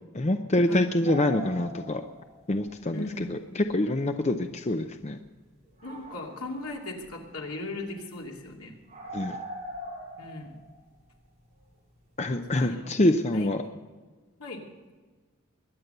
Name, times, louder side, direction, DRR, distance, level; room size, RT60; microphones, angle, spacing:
voice 1, 0.1-2.0 2.5-5.2 9.1-9.4 12.2-13.6, left 1 dB, 30° left, 7 dB, 0.6 m, -26 dB
sound 1, 1.0-2.7 3.0-3.1 3.6-3.7 4.4-4.5 5.6-6.7 7.0-7.3 7.6-7.7 8.1-8.2 8.4-8.5 8.9-11.9 12.2-12.5, equal, 30° right, 6.5 m, -41 dB
voice 2, 2.9-3.3 5.8-8.7 10.2-10.5 12.6-12.9 13.3-13.5 14.4-14.6, left 2 dB, 80° left, 0 dB, 2.7 m, -38 dB
22.0 x 9.5 x 6.8 m, 1.4 s
head